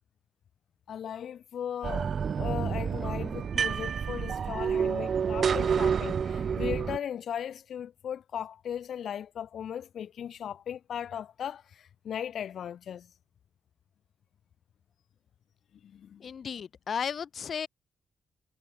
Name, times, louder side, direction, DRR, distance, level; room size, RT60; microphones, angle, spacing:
voice 1, 0.9-2.1 2.4-13.1 15.8-16.3, left 9 dB, 70° left, 2.4 m, -37 dB
sound 1, 1.8-7.0, right 7 dB, 50° right, 0.6 m, -29 dB
voice 2, 16.2-17.7, left 7 dB, 50° left, 2.7 m, -34 dB
wide cardioid pair, 135°, 0 cm